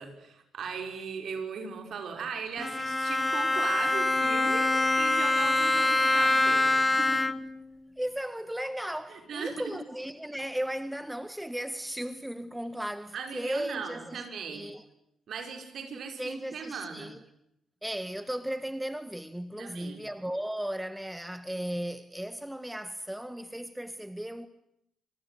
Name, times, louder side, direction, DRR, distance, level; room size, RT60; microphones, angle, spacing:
voice 1, 0.0-7.4 9.1-9.7 13.1-14.7 15.3-17.1 19.6-20.0, right 6 dB, 55° right, 5.8 m, -38 dB
Bowed string instrument, 2.6-7.6, left 2 dB, 20° left, 1.3 m, -25 dB
voice 2, 8.0-14.2 14.5-14.8 16.2-17.2 17.8-24.5, right 1 dB, 5° right, 1.6 m, -36 dB
26.5 x 26.5 x 8.1 m
figure-of-eight pair, 40°, 0 cm